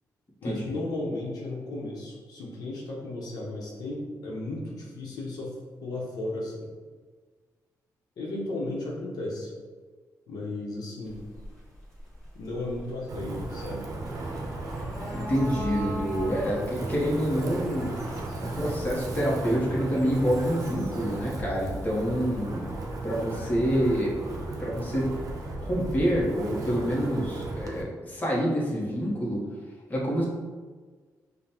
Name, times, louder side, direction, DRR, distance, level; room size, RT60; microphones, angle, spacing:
voice 1, 0.4-6.7 8.2-9.5 10.3-11.2 12.3-13.9, left 2 dB, 75° left, -3 dB, 0.8 m, -35 dB
sound 1, 11.1-21.5, equal, 10° left, 1.2 m, -43 dB
Wind, 13.1-27.8, right 2 dB, 60° right, 0.6 m, -35 dB
voice 2, 15.1-17.9 18.4-22.7 23.0-24.1 24.6-25.1 25.6-29.4 29.9-30.3, equal, 25° left, -4 dB, 0.9 m, -27 dB
5.1 x 2.1 x 2.8 m, 1.5 s
cardioid pair, 90°, 7 cm